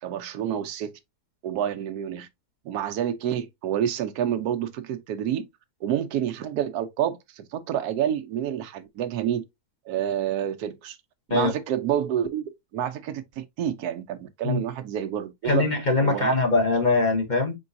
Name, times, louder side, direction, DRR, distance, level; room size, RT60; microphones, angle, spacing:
voice 1, 0.0-0.9 1.4-2.3 2.6-5.5 5.8-9.5 9.9-11.0 11.3-15.7 16.0-16.3, right 10 dB, 90° right, 1.2 m, -28 dB
voice 2, 15.4-17.5, left 3 dB, 35° left, 1.0 m, -22 dB
4.5 x 3.8 x 2.6 m
omnidirectional pair, 1.6 m